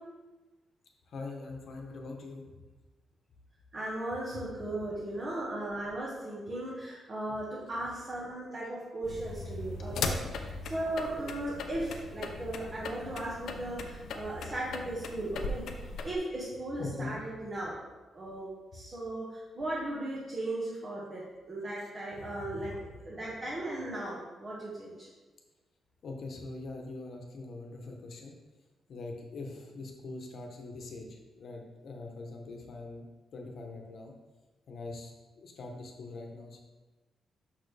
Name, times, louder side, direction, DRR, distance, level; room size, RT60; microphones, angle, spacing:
voice 1, 1.1-2.6 9.8-10.1 16.8-17.2 21.8-22.9 26.0-28.4 28.9-33.0 33.3-34.1 34.7-36.6, left 3 dB, 60° left, 2 dB, 1.0 m, -43 dB
voice 2, 3.7-15.6 16.0-17.7 18.1-22.8 23.0-25.1, right 1 dB, 30° right, -6 dB, 1.4 m, -37 dB
sound 1, 9.0-16.2, left 3 dB, 80° left, 0.6 m, -38 dB
6.5 x 5.8 x 3.4 m, 1.2 s
wide cardioid pair, 145°, 0 cm